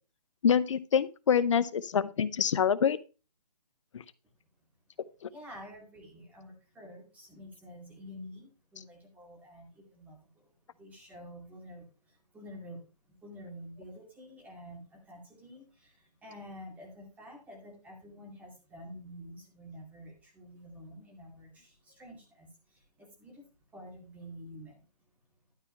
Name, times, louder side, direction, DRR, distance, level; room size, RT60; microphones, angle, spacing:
voice 1, 0.4-3.0, left 8 dB, 50° left, 16 dB, 0.7 m, -26 dB
voice 2, 5.3-12.8 13.1-23.5 23.7-24.8, equal, 5° right, 0 dB, 2.3 m, -49 dB
12.0 x 4.3 x 5.5 m, 0.33 s
hypercardioid pair, 155°, 21 cm